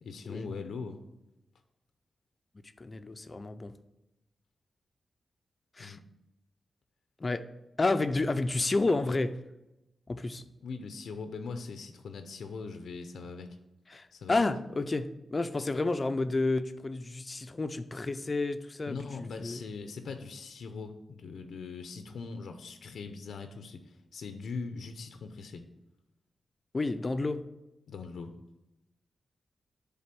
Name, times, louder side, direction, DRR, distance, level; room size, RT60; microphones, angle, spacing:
voice 1, 0.0-1.0 5.8-6.0 10.6-13.5 14.1-14.5 18.9-25.6 27.9-28.3, left 4 dB, 90° left, 7 dB, 0.5 m, -41 dB
voice 2, 2.8-3.7 5.8-6.0 7.2-7.4 7.8-9.4 10.1-10.4 13.9-19.6 26.7-27.4, left 3 dB, 35° left, 10 dB, 0.4 m, -30 dB
7.6 x 3.5 x 5.9 m, 0.95 s
cardioid pair, 90°, 0 cm